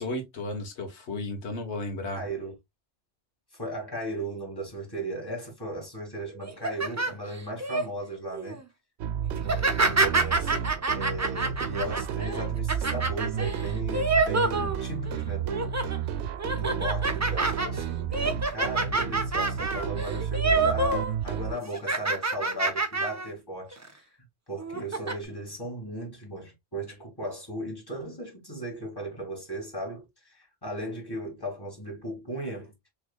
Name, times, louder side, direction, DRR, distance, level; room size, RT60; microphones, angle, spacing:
voice 1, 0.0-2.2, left 2 dB, 90° left, 1.4 m, -34 dB
voice 2, 2.1-2.5 3.5-8.6 9.3-16.0 16.5-24.2 24.5-32.7, right 1 dB, 20° left, 2.3 m, -36 dB
sound 1, 6.4-7.8 8.3-8.6 9.4-15.1 15.5-16.0 16.4-21.1 21.4-23.3 23.7-23.9 24.6-25.1, right 3 dB, 20° right, 0.5 m, -27 dB
sound 2, 9.0-21.5, right 9 dB, 75° right, 0.8 m, -32 dB
6.2 x 3.3 x 2.3 m
omnidirectional pair, 1.1 m